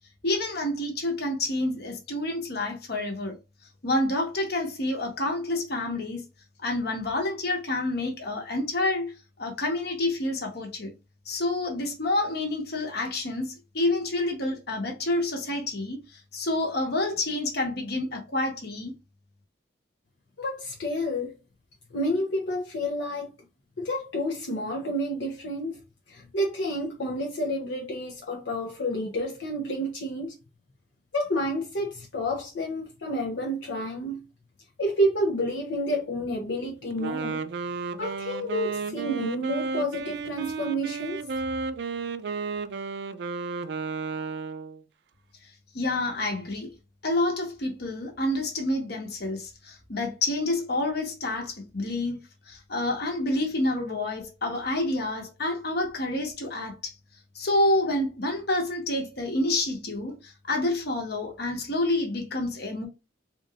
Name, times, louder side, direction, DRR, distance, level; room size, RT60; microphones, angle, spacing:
voice 1, 0.2-3.4 3.8-6.2 6.6-10.9 11.3-16.0 16.3-18.9 45.7-46.7 47.0-52.2 52.5-56.9 57.3-62.9, left 2 dB, 60° left, 1.2 m, -28 dB
voice 2, 20.4-21.4 21.9-23.3 23.8-25.8 26.1-30.3 31.1-34.2 34.8-37.5 38.0-41.2, equal, 80° left, 0.7 m, -29 dB
Wind instrument woodwind instrument, 36.9-44.8, right 4 dB, 65° right, 0.4 m, -32 dB
4.0 x 3.0 x 2.4 m
head